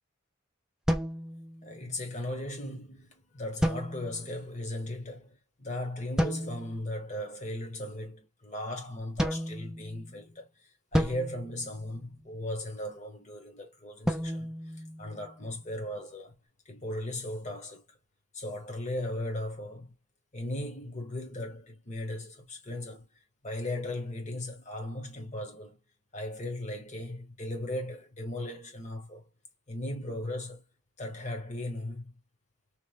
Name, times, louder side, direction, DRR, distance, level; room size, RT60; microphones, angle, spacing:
sound 1, 0.9-1.9 3.6-4.4 6.2-6.8 9.2-10.2 10.9-12.4 14.1-15.6, equal, 5° right, 0.3 m, -32 dB
voice 1, 1.6-10.5 10.9-14.5 15.0-16.3 16.7-17.8 18.3-19.9 20.3-23.1 23.4-25.8 26.1-29.2 29.7-30.6 31.0-32.2, left 1 dB, 35° left, 1.1 m, -37 dB
3.0 x 2.2 x 3.2 m
head